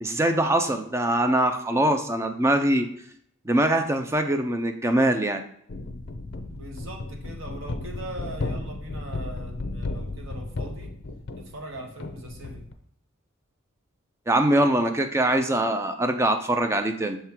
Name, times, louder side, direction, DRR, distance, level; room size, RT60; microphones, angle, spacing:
voice 1, 0.0-2.9 3.5-5.4 14.3-17.2, right 1 dB, 15° right, 6 dB, 0.4 m, -23 dB
sound 1, 5.7-12.7, left 2 dB, 50° left, 0.5 m, -34 dB
voice 2, 6.4-10.9 11.4-12.7, right 1 dB, 65° right, 2 dB, 1.0 m, -40 dB
6.5 x 3.6 x 4.4 m, 0.69 s
head